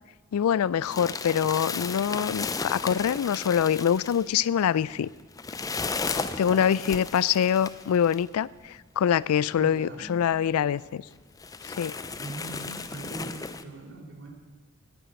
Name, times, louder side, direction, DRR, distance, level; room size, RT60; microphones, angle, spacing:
voice 1, 0.3-5.1 6.0-11.1 11.7-11.9, left 8 dB, 85° left, 21 dB, 0.3 m, -25 dB
sound 1, 0.8-8.2 9.1-9.2 9.5-9.6 10.3-10.4 10.8-10.9 11.4-13.6, left 4 dB, 15° left, 0.4 m, -34 dB
voice 2, 9.5-10.2 12.2-14.3, right 2 dB, 55° right, 0 dB, 2.8 m, -41 dB
10.0 x 10.0 x 7.6 m, 1.3 s
head